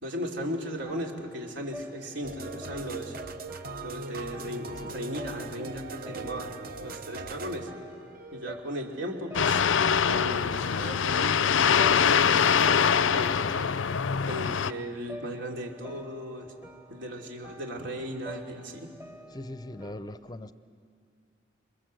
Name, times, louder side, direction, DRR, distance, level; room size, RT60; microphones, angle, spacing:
voice 1, 0.0-3.1 3.8-6.5 6.8-7.7 8.3-9.6 10.0-11.4 11.8-13.8 14.3-16.5 16.9-18.9, equal, 75° right, 1 dB, 3.2 m, -36 dB
sound 1, 0.6-19.9, equal, 15° right, 1.0 m, -48 dB
sound 2, 2.2-10.8, right 3 dB, 50° right, 0.9 m, -41 dB
sound 3, 9.3-14.7, left 7 dB, 90° left, 0.5 m, -23 dB
voice 2, 19.3-20.5, left 1 dB, 20° left, 12 dB, 0.6 m, -40 dB
28.0 x 22.5 x 7.8 m, 2.2 s
head